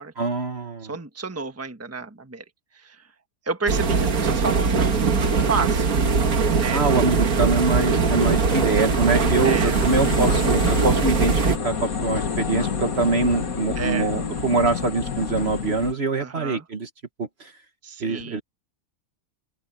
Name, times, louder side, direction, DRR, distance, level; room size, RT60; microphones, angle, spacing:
voice 1, 0.2-0.9 6.7-16.9 17.2-17.5 18.0-18.4, right 3 dB, 45° right, 1.6 m, -24 dB
voice 2, 0.8-2.4 2.7-3.0 3.5-5.9 6.5-6.8 9.4-9.8 13.8-14.1 16.2-16.6 17.8-18.4, right 4 dB, 10° right, 1.3 m, -30 dB
sound 1, 3.7-11.6, right 5 dB, 75° right, 2.0 m, -21 dB
sound 2, 4.3-15.9, left 5 dB, 75° left, 2.1 m, -30 dB
open air
omnidirectional pair, 1.5 m